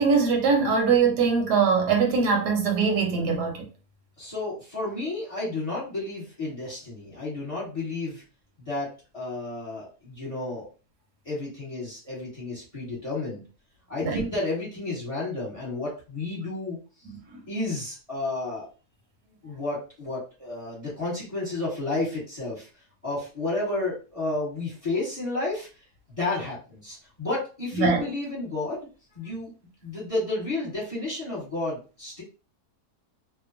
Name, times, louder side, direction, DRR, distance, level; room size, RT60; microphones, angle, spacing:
voice 1, 0.0-3.6 14.0-14.2 27.7-28.0, right 5 dB, 85° right, 1.3 m, -22 dB
voice 2, 4.2-8.2 8.7-10.7 11.2-13.4 13.9-16.8 17.5-18.7 19.4-22.7 23.0-25.7 26.2-28.9 29.1-29.5 29.8-32.2, left 2 dB, 25° left, 1.2 m, -31 dB
2.9 x 2.1 x 2.5 m
omnidirectional pair, 1.7 m